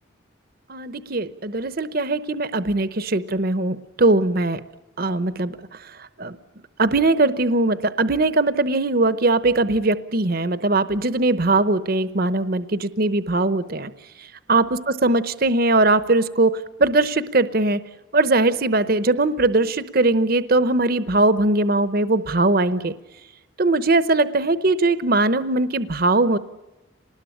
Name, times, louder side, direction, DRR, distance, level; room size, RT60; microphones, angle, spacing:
voice 1, 0.7-4.6 5.0-5.6 5.9-6.4 6.8-13.9 14.2-17.8 18.1-22.9 23.6-26.4, right 2 dB, 45° right, 13 dB, 0.9 m, -20 dB
26.0 x 20.0 x 10.0 m, 1.1 s
head